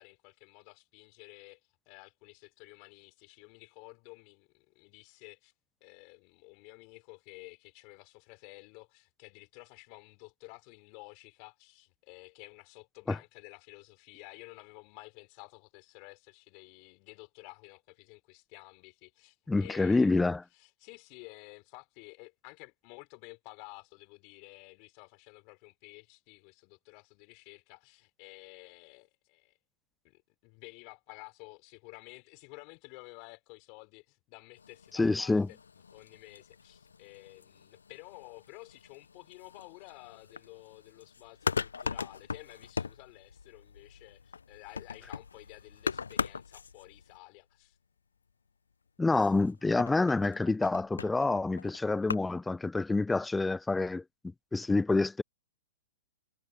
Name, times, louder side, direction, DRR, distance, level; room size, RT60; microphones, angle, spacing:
voice 1, 0.0-1.6 1.8-5.5 5.8-20.2 20.5-29.6 30.0-35.6 35.9-47.8, left 32 dB, 40° left, 3.2 m, -52 dB
voice 2, 19.5-20.4 34.9-35.5 49.0-54.0 54.5-55.2, left 3 dB, 5° left, 0.5 m, -27 dB
sound 1, 34.6-47.4 49.1-52.2, left 5 dB, 80° left, 0.5 m, -40 dB
hypercardioid pair, 115°, 0 cm